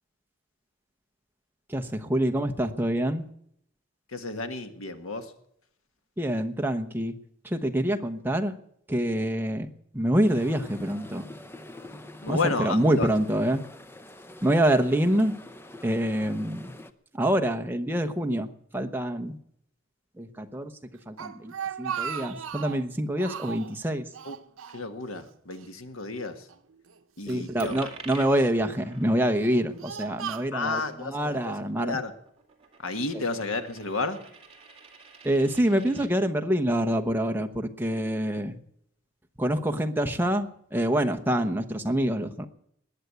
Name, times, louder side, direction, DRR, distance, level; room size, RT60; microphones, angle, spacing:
voice 1, 1.7-3.2 6.2-7.1 7.4-8.6 8.9-11.2 12.3-13.6 14.4-15.3 15.8-16.7 17.1-19.4 20.2-20.7 21.1-24.0 27.3-32.0 33.1-33.2 35.2-38.6 39.4-42.5, right 1 dB, 10° right, 5 dB, 0.9 m, -26 dB
voice 2, 4.1-5.3 12.2-13.1 24.2-24.3 24.7-26.5 27.2-27.9 28.1-28.2 30.5-32.1 32.8-34.2, left 3 dB, 80° left, 8 dB, 1.6 m, -32 dB
sound 1, 10.2-16.9, left 1 dB, 10° left, 0.6 m, -46 dB
Speech, 20.9-22.8 23.2-23.7 24.1-25.2 25.5-25.7 26.5-27.5 28.2-28.6 29.2-30.9, right 7 dB, 80° right, 0.8 m, -37 dB
Coin (dropping), 27.6-36.1, right 5 dB, 25° right, 2.1 m, -50 dB
20.5 x 8.2 x 8.1 m, 0.71 s
head